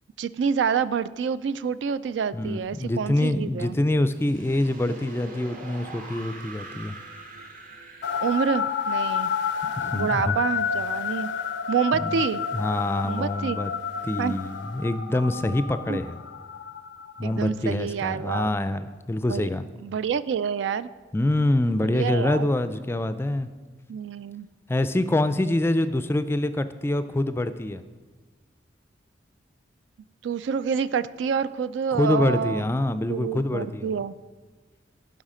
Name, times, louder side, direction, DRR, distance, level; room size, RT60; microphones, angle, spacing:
voice 1, 0.2-3.8 8.2-9.3 9.9-11.3 11.7-12.4 13.0-13.6 14.2-14.4 15.9-16.0 17.2-18.5 19.3-19.5 19.8-20.9 21.8-22.5 23.9-24.5 30.2-32.6 33.1-34.2, right 6 dB, 80° right, 15 dB, 0.3 m, -27 dB
voice 2, 2.3-6.9 9.6-10.4 11.9-12.2 12.5-13.7 14.0-16.2 17.2-19.6 21.1-23.5 24.7-27.8 31.9-34.0, left 1 dB, 15° left, 12 dB, 0.3 m, -25 dB
sound 1, 4.1-11.0, right 2 dB, 50° right, 1.1 m, -44 dB
sound 2, 8.0-17.5, left 7 dB, 80° left, 0.4 m, -30 dB
11.5 x 5.6 x 5.0 m, 1.3 s
head